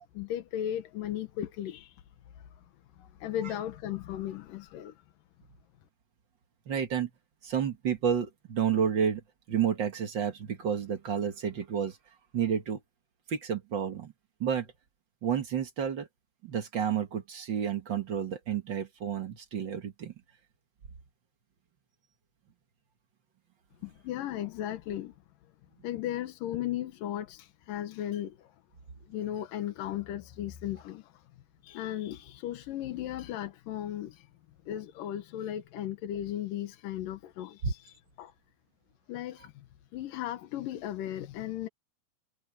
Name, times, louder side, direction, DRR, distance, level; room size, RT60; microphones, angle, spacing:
voice 1, 0.1-2.1 2.3-2.6 3.0-5.0 23.8-25.1 25.8-28.6 29.1-31.3 31.6-34.3 34.7-38.3 39.1-39.7 39.9-41.7, left 12 dB, 85° left, 2.8 m, -36 dB
voice 2, 6.7-7.1 7.4-9.2 9.5-12.0 12.3-12.8 13.3-14.1 14.4-14.7 15.2-16.1 16.4-20.1 37.6-37.7, right 8 dB, 50° right, 1.6 m, -30 dB
omnidirectional pair, 3.8 m